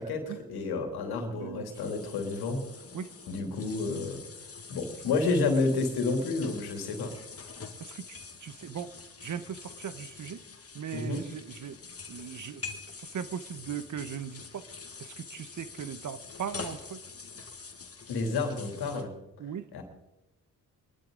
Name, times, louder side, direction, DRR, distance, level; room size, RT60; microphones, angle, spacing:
voice 1, 0.0-2.6 3.3-4.2 4.7-7.1 10.9-11.2 18.1-19.1 19.7-19.8, left 3 dB, 85° left, 4 dB, 2.9 m, -30 dB
voice 2, 1.4-1.9 2.9-3.1 7.8-8.9 9.2-10.4 10.7-11.8 12.1-12.6 13.0-14.7 15.0-17.0 19.4-19.7, right 8 dB, 55° right, 14 dB, 1.0 m, -39 dB
sound 1, 1.7-19.0, left 5 dB, 40° left, 1.8 m, -45 dB
22.5 x 12.0 x 3.9 m, 0.96 s
supercardioid pair, 60°, 37 cm